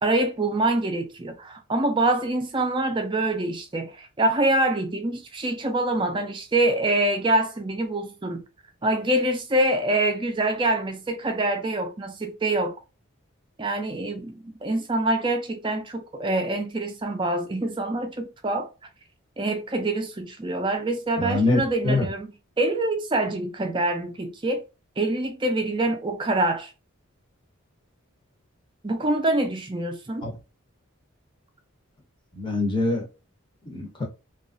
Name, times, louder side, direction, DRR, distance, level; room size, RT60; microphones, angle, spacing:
voice 1, 0.0-8.4 8.8-12.8 13.6-14.3 14.6-18.7 19.4-22.3 22.6-24.6 25.0-26.7 28.8-30.3, right 2 dB, 20° right, 0.4 m, -25 dB
voice 2, 21.2-22.1 30.2-30.3 32.3-33.0 33.7-34.0, left 2 dB, 20° left, 0.7 m, -24 dB
2.8 x 2.4 x 2.4 m
head